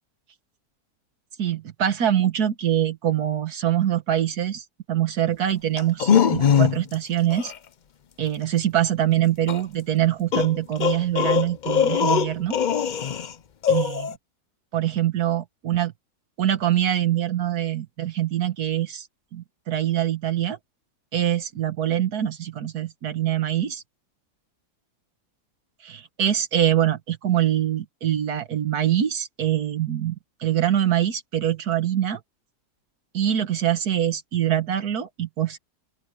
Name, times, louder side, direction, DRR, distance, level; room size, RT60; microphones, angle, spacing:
voice 1, 1.4-7.5 8.2-12.6 13.7-14.2 14.7-15.9 16.4-19.1 19.3-20.6 21.1-23.8 25.8-32.2 33.1-35.6, right 11 dB, 85° right, 1.7 m, -24 dB
sound 1, 5.8-6.9 7.3-7.5 9.5-9.6 10.3-13.3 13.6-14.1, left 8 dB, 60° left, 0.5 m, -21 dB
open air
omnidirectional pair, 1.6 m